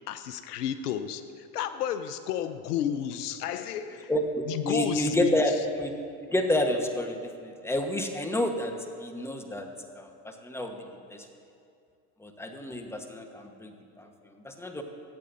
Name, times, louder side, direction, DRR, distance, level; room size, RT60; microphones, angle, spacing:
voice 1, 0.1-4.1 4.5-5.4, left 9 dB, 85° left, 11 dB, 0.7 m, -32 dB
voice 2, 4.1-5.9 6.3-11.3 12.2-14.8, left 1 dB, 5° left, 3 dB, 1.2 m, -30 dB
22.5 x 8.6 x 2.7 m, 2.4 s
hypercardioid pair, 85°, 46 cm